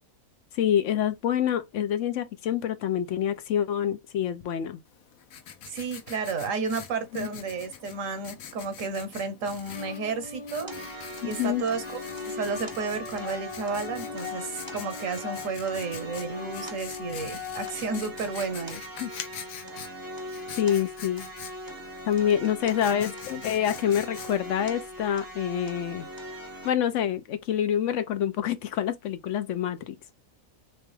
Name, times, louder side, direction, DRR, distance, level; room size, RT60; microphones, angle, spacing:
voice 1, 0.5-4.8 7.1-7.3 11.2-11.6 19.0-19.1 20.6-21.3 22.1-26.1 26.6-29.9, left 9 dB, 65° left, 1.0 m, -27 dB
Writing, 4.9-24.7, left 8 dB, 85° left, 1.1 m, -45 dB
voice 2, 5.7-10.7 11.2-11.8 12.3-18.8, right 4 dB, 70° right, 1.2 m, -32 dB
sound 1, 9.7-17.7, left 5 dB, 40° left, 0.8 m, -40 dB
sound 2, 10.7-26.7, equal, 20° right, 0.7 m, -41 dB
3.4 x 3.0 x 3.2 m
omnidirectional pair, 1.4 m